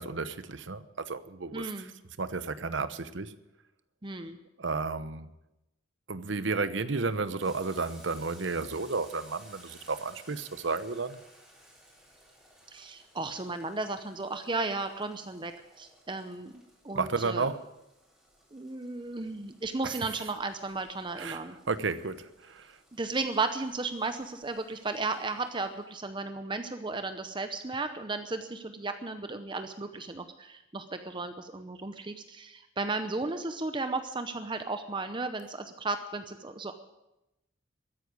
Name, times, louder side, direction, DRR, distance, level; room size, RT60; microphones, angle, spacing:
voice 1, 0.0-1.9 2.2-3.3 4.6-5.3 6.1-11.2 16.9-17.6 19.8-19.9 21.2-22.8, right 4 dB, 70° right, 0.9 m, -32 dB
voice 2, 1.5-1.9 4.0-4.4 12.7-15.5 15.8-16.5 16.8-17.5 18.5-21.6 22.9-36.7, right 3 dB, 25° right, 0.7 m, -34 dB
Boiling, 7.4-25.8, right 1 dB, ahead, 3.9 m, -58 dB
13.5 x 9.7 x 9.4 m
head